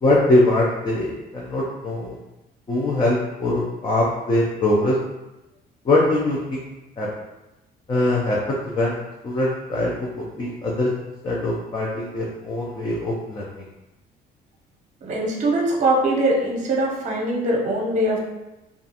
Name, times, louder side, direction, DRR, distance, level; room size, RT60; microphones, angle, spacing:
voice 1, 0.0-2.1 2.7-4.9 5.9-6.6 7.0-7.1 7.9-9.9 10.2-10.9 11.2-13.6, left 1 dB, 30° left, -4 dB, 0.5 m, -22 dB
voice 2, 15.0-18.2, right 1 dB, 45° right, -1 dB, 0.7 m, -22 dB
2.4 x 2.3 x 2.8 m, 0.99 s
cardioid pair, 110°, 17 cm